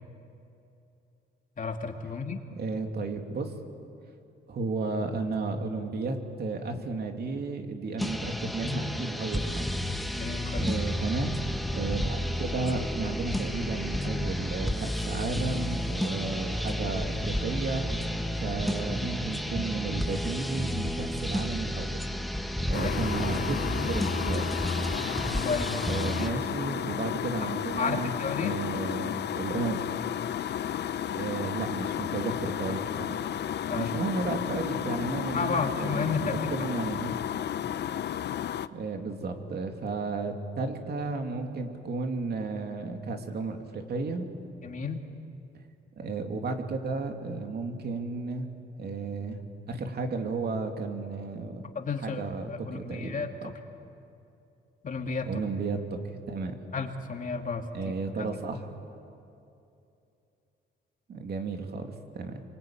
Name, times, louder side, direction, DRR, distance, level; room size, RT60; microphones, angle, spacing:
voice 1, 1.6-2.4 10.1-10.7 22.7-23.0 25.4-26.3 27.4-27.5 27.8-28.6 33.7-33.9 35.3-36.7 44.6-45.0 51.7-52.2 52.5-53.5 54.8-55.3 56.7-57.7, left 5 dB, 40° left, 3 dB, 2.6 m, -32 dB
voice 2, 2.5-3.5 4.5-9.8 10.5-11.4 11.7-17.9 18.3-22.1 22.6-24.6 25.9-28.1 28.4-29.8 31.1-33.2 33.7-37.1 38.7-44.3 46.0-48.5 48.8-49.4 49.7-51.6 52.0-53.5 55.2-56.6 57.7-58.7 61.1-62.4, right 3 dB, 55° right, 4 dB, 2.8 m, -33 dB
sound 1, 8.0-26.3, equal, ahead, 1.5 m, -31 dB
sound 2, 22.7-38.7, left 10 dB, 60° left, 0.8 m, -33 dB
27.0 x 24.5 x 8.9 m, 2.7 s
cardioid pair, 90°, 20 cm